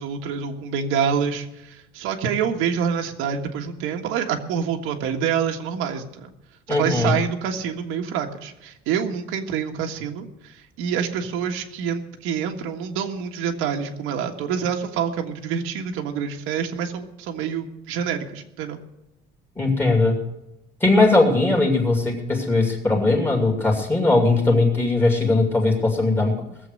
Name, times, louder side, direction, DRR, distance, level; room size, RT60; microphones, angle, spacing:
voice 1, 0.0-6.3 6.7-18.8, right 7 dB, 85° right, 3 dB, 1.6 m, -27 dB
voice 2, 6.7-7.1 19.6-20.2 20.8-26.4, left 2 dB, 10° left, 1 dB, 2.5 m, -19 dB
19.0 x 7.7 x 6.6 m, 0.91 s
cardioid pair, 175°, 21 cm